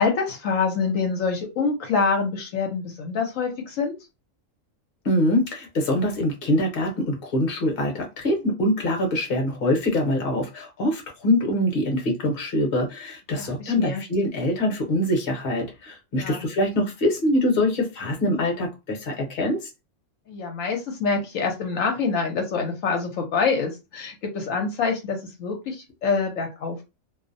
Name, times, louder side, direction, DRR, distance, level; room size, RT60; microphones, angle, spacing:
voice 1, 0.0-4.0 13.4-14.0 16.1-16.5 20.3-26.8, left 5 dB, 75° left, 2 dB, 1.0 m, -26 dB
voice 2, 5.0-19.7, left 1 dB, 50° left, 2 dB, 0.9 m, -24 dB
2.5 x 2.0 x 2.5 m, 0.26 s
omnidirectional pair, 1.4 m